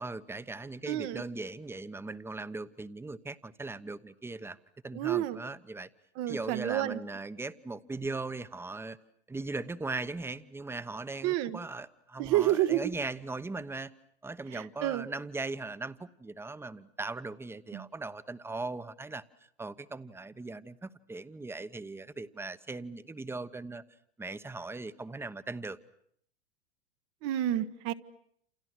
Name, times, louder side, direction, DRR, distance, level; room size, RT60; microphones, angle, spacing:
voice 1, 0.0-4.6 4.8-5.9 6.3-9.0 9.3-13.9 14.2-19.2 19.6-23.8 24.2-25.8, right 3 dB, 10° right, 13 dB, 1.1 m, -39 dB
voice 2, 0.9-1.2 4.9-5.4 6.2-7.0 11.2-11.6 12.2-12.8 14.5-15.0 17.7-17.8 27.2-27.9, right 13 dB, 45° right, 11 dB, 1.3 m, -29 dB
28.5 x 28.5 x 6.3 m, 0.67 s
hypercardioid pair, 100°, 31 cm